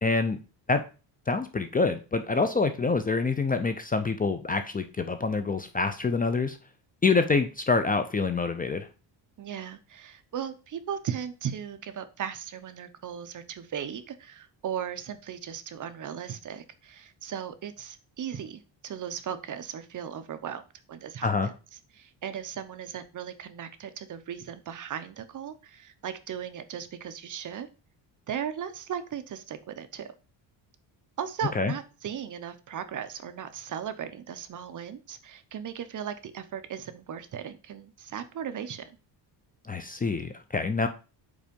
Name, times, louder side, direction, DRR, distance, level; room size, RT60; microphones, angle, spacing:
voice 1, 0.0-0.4 0.7-0.8 1.3-6.6 7.0-8.9 21.2-21.5 31.6-31.7 39.7-40.9, left 4 dB, 20° left, 9 dB, 0.5 m, -26 dB
voice 2, 9.4-20.6 20.9-21.5 21.9-27.7 28.3-30.1 31.2-39.0, right 8 dB, 45° right, 10 dB, 0.8 m, -37 dB
5.2 x 4.6 x 5.2 m, 0.32 s
cardioid pair, 130°, 44 cm